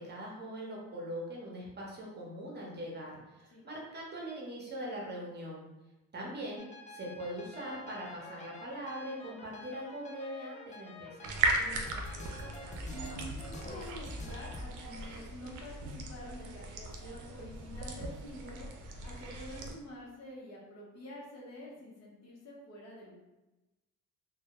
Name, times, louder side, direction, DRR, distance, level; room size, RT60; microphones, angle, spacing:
voice 1, 0.0-5.7 6.1-11.4, equal, 35° right, -3 dB, 0.8 m, -41 dB
sound 1, 6.6-14.6, left 2 dB, 25° left, 0.4 m, -47 dB
sound 2, 11.2-19.7, right 3 dB, 90° right, 0.5 m, -37 dB
voice 2, 11.5-12.4 12.9-18.7 19.0-23.2, left 1 dB, 60° left, -4 dB, 0.8 m, -48 dB
2.2 x 2.1 x 2.9 m, 1.0 s
cardioid pair, 90°, 30 cm